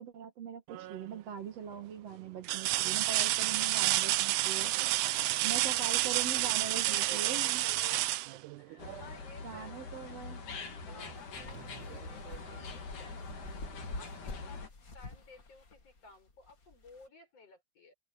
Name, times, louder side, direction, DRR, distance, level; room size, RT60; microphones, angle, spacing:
voice 1, 0.0-4.7 5.4-7.6 9.4-10.4, right 7 dB, 60° right, 2.5 m, -42 dB
sound 1, 0.7-1.2 1.7-1.8 2.4-9.1 10.9-11.0 11.5-12.5 13.8-13.9, right 16 dB, 80° right, 2.1 m, -30 dB
voice 2, 3.3-4.1 5.1-5.4 6.5-8.0 8.3-10.2 10.7-17.9, left 3 dB, 50° left, 8.0 m, -55 dB
angry-squirrel-long, 8.8-14.7, left 4 dB, 80° left, 4.6 m, -44 dB
sound 2, 11.1-17.1, left 3 dB, 30° left, 2.0 m, -48 dB
open air
omnidirectional pair, 3.6 m